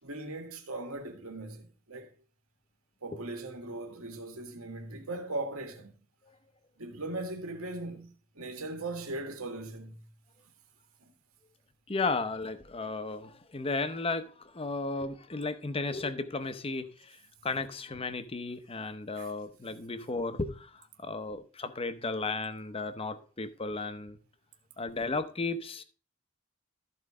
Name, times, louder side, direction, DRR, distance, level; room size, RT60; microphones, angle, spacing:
voice 1, 0.0-2.1 3.0-5.9 6.8-10.0 19.2-19.3 19.7-19.8, right 2 dB, 80° right, 1.9 m, -39 dB
voice 2, 11.9-24.2 24.8-25.8, left 3 dB, 25° left, 0.7 m, -34 dB
13.5 x 4.6 x 4.9 m
head